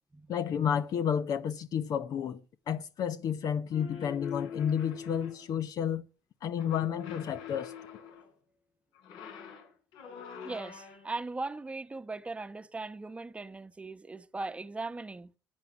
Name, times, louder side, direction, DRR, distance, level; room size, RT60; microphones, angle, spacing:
voice 1, 0.3-2.4 2.7-6.0 6.4-7.7, left 8 dB, 55° left, 1.0 m, -31 dB
sound 1, 3.7-5.6 6.5-8.3 8.9-11.2, left 7 dB, 75° left, 6.0 m, -44 dB
voice 2, 10.4-15.3, right 3 dB, 15° right, 1.1 m, -39 dB
14.5 x 9.4 x 7.3 m
cardioid pair, 105°, 8 cm